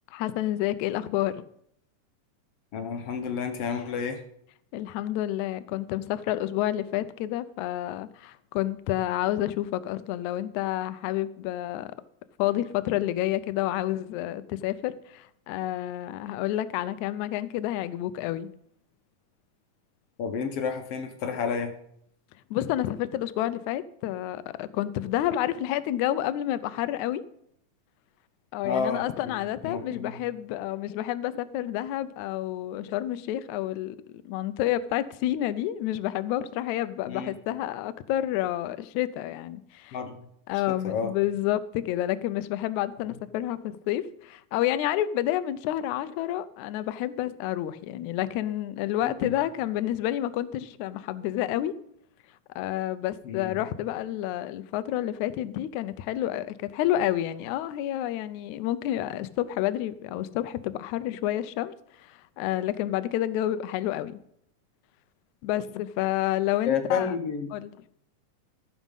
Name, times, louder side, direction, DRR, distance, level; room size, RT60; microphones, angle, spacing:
voice 1, 0.1-1.4 4.7-11.9 12.4-18.5 22.5-27.2 28.5-34.0 34.3-40.0 40.5-51.7 52.6-64.2 65.4-67.1 67.5-67.7, left 13 dB, 80° left, 1.8 m, -29 dB
voice 2, 2.7-4.2 20.2-21.7 28.6-30.2 37.1-37.3 39.9-40.3 40.5-41.1 49.0-49.3 53.2-53.6 66.7-67.5, left 6 dB, 60° left, 1.6 m, -31 dB
15.0 x 6.2 x 5.4 m
omnidirectional pair, 3.9 m